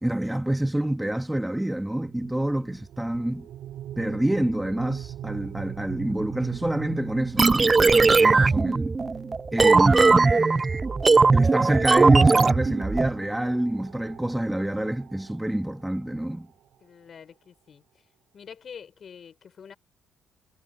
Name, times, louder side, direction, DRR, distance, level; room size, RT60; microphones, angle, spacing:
voice 1, 0.0-3.5 4.0-9.0 9.5-10.5 11.3-16.5, right 1 dB, 5° right, 2.2 m, -27 dB
sound 1, 2.0-16.7, right 11 dB, 80° right, 3.1 m, -41 dB
voice 2, 2.3-2.7 16.8-18.0 18.3-19.8, left 7 dB, 50° left, 6.3 m, -46 dB
sound 2, 7.4-13.1, right 3 dB, 30° right, 0.3 m, -19 dB
cardioid pair, 90°, 0 cm